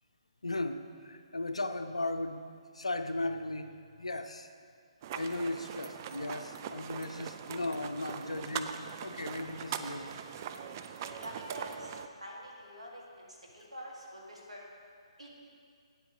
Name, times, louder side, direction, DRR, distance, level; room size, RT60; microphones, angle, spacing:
voice 1, 0.4-2.5 2.7-3.7 4.0-4.5 5.1-10.1, left 2 dB, 80° left, 9 dB, 0.5 m, -36 dB
sound 1, 5.0-12.1, right 8 dB, 30° right, 0.3 m, -41 dB
voice 2, 10.7-11.9 12.2-14.6 15.2-15.4, equal, 85° right, -2 dB, 2.0 m, -46 dB
9.2 x 8.0 x 3.9 m, 2.2 s
figure-of-eight pair, 135°, 3 cm